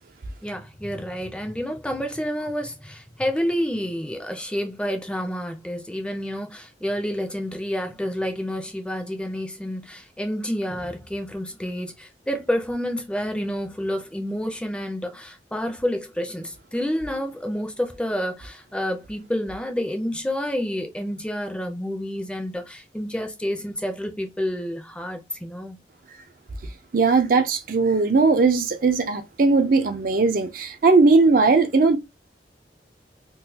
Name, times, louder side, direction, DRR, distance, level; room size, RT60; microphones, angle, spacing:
voice 1, 0.4-25.8, equal, 5° left, 0.5 m, -29 dB
voice 2, 26.9-32.0, right 3 dB, 50° right, 0.5 m, -18 dB
3.8 x 2.3 x 2.8 m
head